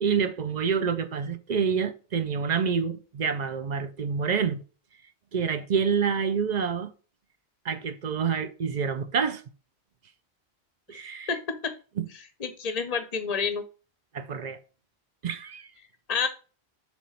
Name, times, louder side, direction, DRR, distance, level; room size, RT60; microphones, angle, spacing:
voice 1, 0.0-4.6 5.3-6.9 7.6-9.4 10.9-11.4 12.0-12.1 14.1-14.6 15.2-15.7, right 6 dB, 50° right, 0.7 m, -27 dB
voice 2, 11.3-11.7 12.4-13.6 16.1-16.3, left 5 dB, 45° left, 0.7 m, -29 dB
7.1 x 3.1 x 5.6 m
omnidirectional pair, 1.1 m